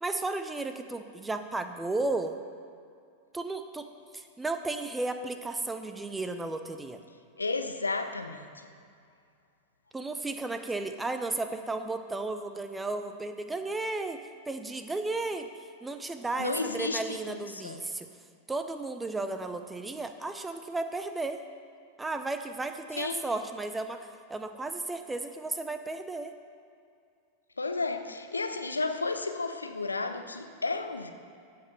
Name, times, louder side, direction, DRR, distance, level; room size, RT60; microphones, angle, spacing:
voice 1, 0.0-2.4 3.3-3.9 4.1-7.0 9.9-15.5 15.8-18.1 18.5-21.4 22.0-26.3, right 2 dB, 10° right, 8 dB, 0.6 m, -34 dB
voice 2, 7.4-8.5 16.4-17.8 23.0-23.2 27.6-31.1, left 3 dB, 80° left, 7 dB, 0.7 m, -32 dB
15.5 x 5.2 x 5.5 m, 2.3 s
figure-of-eight pair, 90°, 0 cm